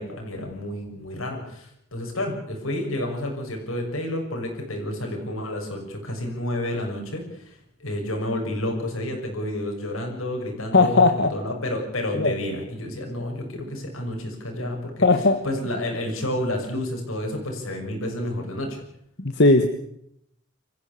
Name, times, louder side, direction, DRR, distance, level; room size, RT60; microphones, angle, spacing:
voice 1, 0.0-15.1 15.4-18.8, left 1 dB, 80° left, 2 dB, 6.8 m, -30 dB
voice 2, 10.7-11.3 12.1-12.3 15.0-15.4 19.2-19.7, left 3 dB, 55° left, 7 dB, 1.5 m, -17 dB
25.5 x 15.0 x 8.5 m, 0.75 s
head